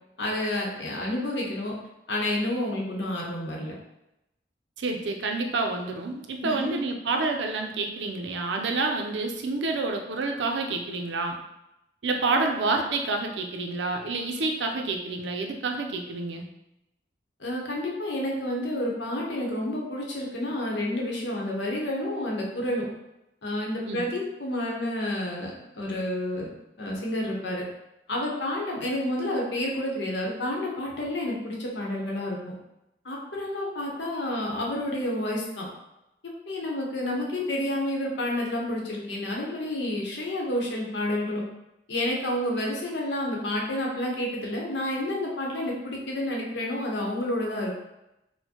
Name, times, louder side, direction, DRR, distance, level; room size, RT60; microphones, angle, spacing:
voice 1, 0.2-1.7 2.1-3.7 6.4-6.7 17.4-22.8 23.4-26.5 26.8-27.6 28.1-32.5 33.0-35.7 36.5-41.4 41.9-47.8, left 1 dB, 80° left, -1 dB, 0.8 m, -29 dB
voice 2, 4.8-11.4 12.0-16.5 23.9-24.0, right 3 dB, 90° right, 3 dB, 0.5 m, -28 dB
4.3 x 2.1 x 2.8 m, 0.89 s
head